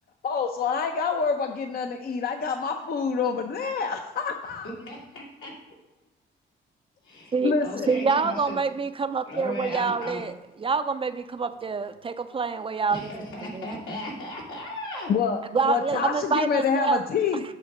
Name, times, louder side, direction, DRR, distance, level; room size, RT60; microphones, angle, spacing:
voice 1, 0.2-4.7 7.4-7.9 15.1-17.4, left 5 dB, 50° left, 5 dB, 0.6 m, -27 dB
voice 2, 4.6-5.5 7.0-7.3 7.6-8.6 9.3-10.2 12.9-15.1, left 1 dB, 85° left, -4 dB, 2.4 m, -36 dB
voice 3, 7.9-10.3 10.6-13.7 15.5-17.0, right 5 dB, 25° right, 10 dB, 0.4 m, -26 dB
7.6 x 3.6 x 5.9 m, 1.0 s
cardioid pair, 90°, 20 cm